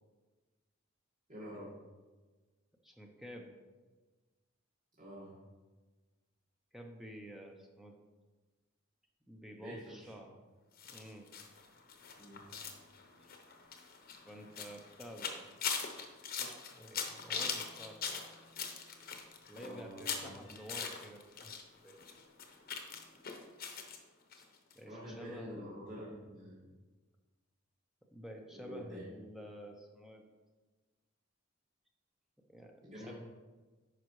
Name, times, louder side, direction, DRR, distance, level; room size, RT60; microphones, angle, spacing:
voice 1, 1.3-1.7 5.0-5.4 9.6-10.3 12.2-12.5 19.6-20.4 24.8-26.6 28.5-29.0 32.8-33.1, equal, 40° right, -8 dB, 1.7 m, -47 dB
voice 2, 2.8-3.5 6.7-8.0 9.3-10.3 10.9-11.3 13.2-13.3 14.3-15.7 16.4-18.2 19.5-21.5 21.8-22.0 24.3-24.4 24.7-25.6 28.1-30.3 32.5-33.1, equal, ahead, 2 dB, 0.6 m, -50 dB
sound 1, 10.8-21.6 21.9-24.0 24.3-24.4 24.7-24.8, left 6 dB, 50° left, 0.8 m, -41 dB
9.4 x 5.6 x 3.1 m, 1.3 s
head